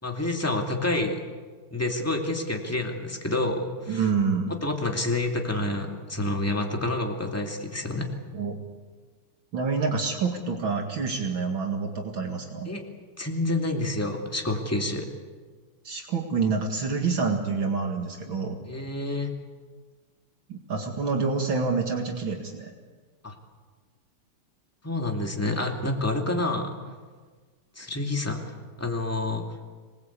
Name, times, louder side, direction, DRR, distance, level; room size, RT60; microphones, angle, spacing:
voice 1, 0.0-1.2 1.7-4.1 4.5-8.1 12.7-12.8 13.2-15.1 18.7-19.3 23.2-23.3 24.8-26.7 27.8-28.4 28.8-29.5, left 2 dB, 5° left, 2 dB, 2.4 m, -28 dB
voice 2, 3.9-4.5 8.3-8.6 9.5-12.7 15.8-18.6 20.5-22.7, right 4 dB, 65° right, 1 dB, 2.7 m, -27 dB
26.5 x 20.0 x 8.3 m, 1.4 s
omnidirectional pair, 2.4 m